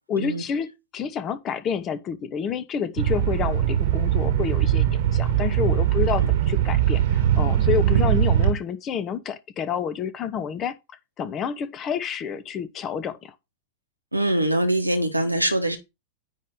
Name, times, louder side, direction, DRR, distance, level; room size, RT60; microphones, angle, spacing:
voice 1, 0.1-10.7 11.2-13.3, left 7 dB, 30° left, 0.9 m, -29 dB
sound 1, 3.0-8.5, right 10 dB, 55° right, 1.3 m, -21 dB
voice 2, 14.1-15.8, right 1 dB, 85° right, 1.4 m, -23 dB
9.6 x 3.3 x 5.5 m
figure-of-eight pair, 90°, 0 cm